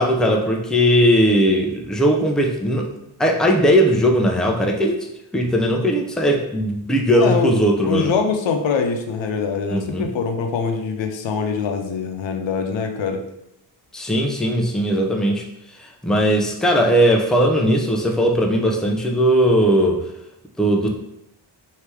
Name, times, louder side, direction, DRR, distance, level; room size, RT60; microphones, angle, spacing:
voice 1, 0.0-2.9 3.2-5.0 5.3-8.1 9.7-10.1 13.9-15.5 15.8-20.0 20.6-20.9, equal, ahead, 1 dB, 0.5 m, -18 dB
voice 2, 7.1-7.5 7.8-13.2, left 5 dB, 80° left, 4 dB, 0.7 m, -23 dB
3.3 x 2.8 x 4.6 m, 0.84 s
cardioid pair, 80°, 44 cm